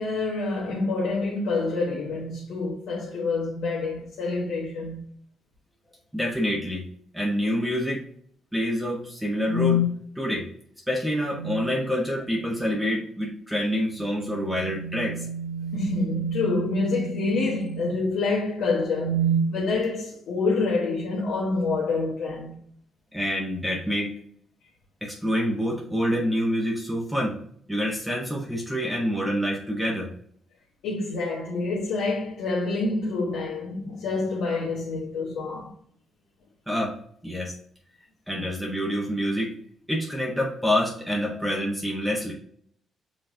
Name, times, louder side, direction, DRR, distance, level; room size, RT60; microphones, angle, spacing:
voice 1, 0.0-5.0 15.7-22.6 30.8-35.7 41.3-41.4, left 3 dB, 75° left, 1.2 m, -27 dB
voice 2, 6.1-6.9 7.1-8.0 8.5-9.9 10.2-10.5 10.9-15.2 23.1-24.1 25.0-27.4 27.7-30.1 36.7-36.9 37.2-37.6 38.3-39.5 39.9-42.3, equal, 5° right, 1.0 m, -27 dB
sound 1, 9.5-9.9 11.2-11.8 14.0-18.1 18.8-19.5, right 1 dB, 40° right, 1.5 m, -29 dB
5.7 x 3.1 x 2.6 m
cardioid pair, 90°, 0 cm